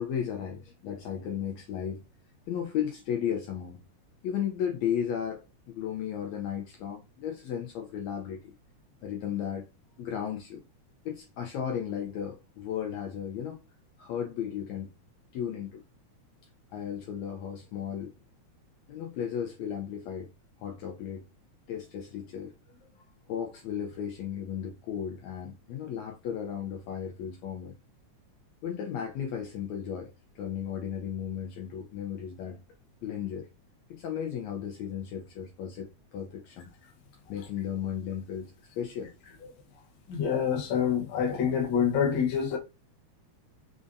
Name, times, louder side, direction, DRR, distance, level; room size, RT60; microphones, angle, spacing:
voice 1, 0.0-2.0 2.5-3.8 4.2-8.5 9.0-9.7 10.0-10.6 11.1-13.6 14.0-14.9 15.3-15.8 16.7-18.1 18.9-20.3 20.6-21.3 21.7-27.7 28.6-32.6 33.0-33.5 33.9-36.7 37.3-39.1, left 9 dB, 80° left, 1.6 m, -35 dB
voice 2, 40.1-42.6, left 7 dB, 60° left, 1.2 m, -26 dB
5.1 x 2.5 x 2.5 m
omnidirectional pair, 3.5 m